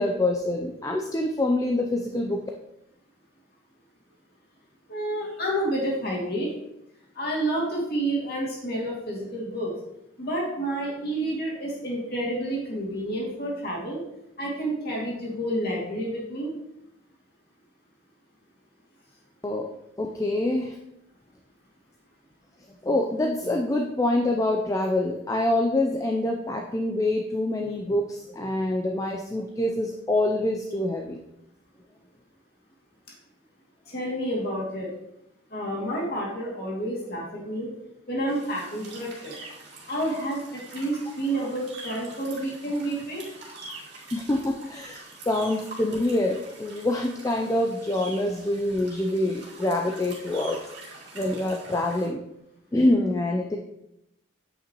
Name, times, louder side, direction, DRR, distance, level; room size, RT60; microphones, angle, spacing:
voice 1, 0.0-2.4 19.4-19.7 20.0-20.8 22.8-31.2 44.1-50.6 51.1-52.2 52.7-53.6, left 1 dB, 15° left, 2 dB, 0.4 m, -26 dB
voice 2, 4.9-6.5 7.1-9.7 10.2-14.0 14.4-16.5 33.9-34.9 35.5-37.7 38.1-39.3 39.9-43.2, right 1 dB, 50° left, -4 dB, 2.3 m, -29 dB
sound 1, 38.3-52.1, right 2 dB, 55° right, 2.2 m, -44 dB
8.6 x 5.7 x 3.0 m, 0.84 s
head